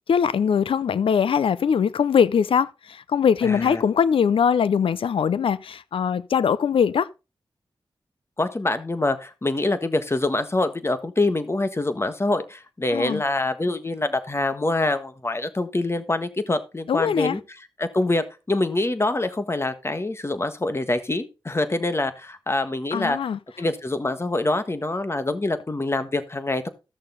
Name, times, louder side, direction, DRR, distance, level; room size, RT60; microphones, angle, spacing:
voice 1, 0.1-7.1 12.9-13.2 16.9-17.4 22.9-23.4, left 7 dB, 85° left, 0.4 m, -21 dB
voice 2, 3.4-3.8 8.4-17.4 17.8-23.2 23.6-26.7, left 2 dB, 30° left, 1.4 m, -25 dB
14.0 x 6.6 x 3.9 m
wide cardioid pair, 80°, 9 cm